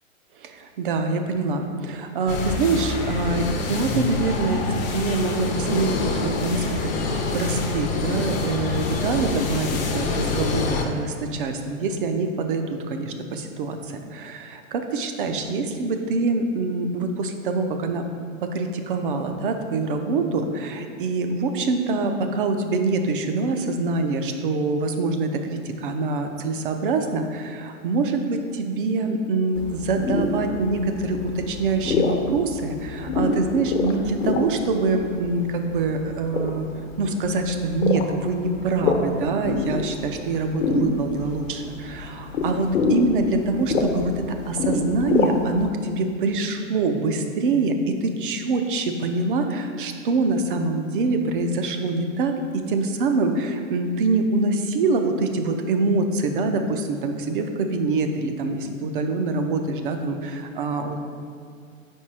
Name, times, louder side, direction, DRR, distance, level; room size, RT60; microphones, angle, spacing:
voice 1, 0.4-18.1 18.4-36.7 37.0-61.0, right 3 dB, 40° right, 6 dB, 0.5 m, -25 dB
sound 1, 2.3-10.8, left 3 dB, 35° left, 0.6 m, -26 dB
sound 2, 29.6-45.7, left 3 dB, 70° left, 1.0 m, -27 dB
5.1 x 4.4 x 4.8 m, 2.3 s
hypercardioid pair, 145°, 40 cm